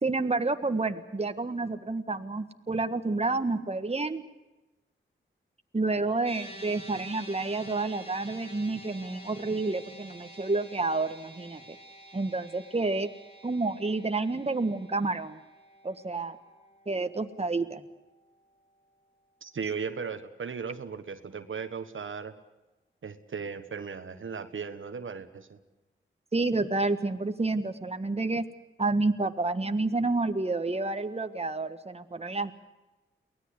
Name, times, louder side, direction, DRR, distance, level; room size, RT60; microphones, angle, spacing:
voice 1, 0.0-4.2 5.7-11.6 12.1-13.1 13.4-15.4 15.8-16.4 16.9-17.8 26.3-28.5 28.8-32.5, right 3 dB, 30° right, 8 dB, 1.5 m, -29 dB
sound 1, 6.2-18.7, right 1 dB, 30° left, 7.7 m, -49 dB
voice 2, 19.4-22.3 23.0-25.6, right 5 dB, 75° right, 9 dB, 1.4 m, -37 dB
23.5 x 18.0 x 8.2 m, 1.1 s
cardioid pair, 55°, 21 cm